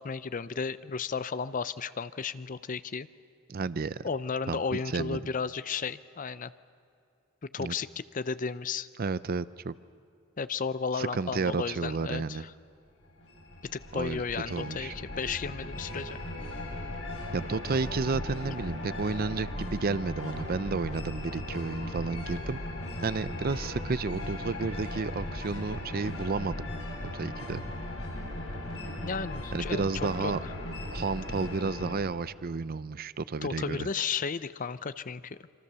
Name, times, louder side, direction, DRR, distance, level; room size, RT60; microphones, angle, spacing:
voice 1, 0.0-3.1 4.0-6.5 7.4-8.9 10.4-12.5 13.7-16.2 29.0-30.3 33.4-35.4, left 5 dB, 40° left, 15 dB, 0.5 m, -34 dB
voice 2, 3.5-4.1 4.5-4.6 4.9-5.3 7.6-7.7 9.0-9.7 11.0-12.4 13.9-14.9 17.3-22.6 23.0-26.7 27.1-27.6 29.5-30.4 30.9-33.9, right 4 dB, 45° right, 16 dB, 0.5 m, -32 dB
sound 1, 13.0-31.9, left 1 dB, 70° left, 7.0 m, -37 dB
27.0 x 25.5 x 6.9 m, 2.5 s
head